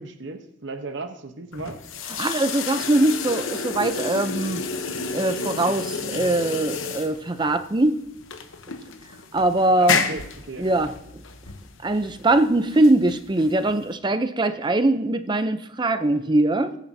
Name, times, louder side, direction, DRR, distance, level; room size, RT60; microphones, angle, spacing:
voice 1, 0.0-1.8 9.8-10.7, right 3 dB, 60° right, 6 dB, 1.0 m, -34 dB
sound 1, 1.5-14.0, left 5 dB, 65° left, 1.0 m, -31 dB
voice 2, 2.2-4.6 5.1-8.0 9.3-10.0 10.6-11.2 11.8-16.8, right 2 dB, 20° right, 10 dB, 0.6 m, -22 dB
20.5 x 9.0 x 2.8 m, 0.82 s
head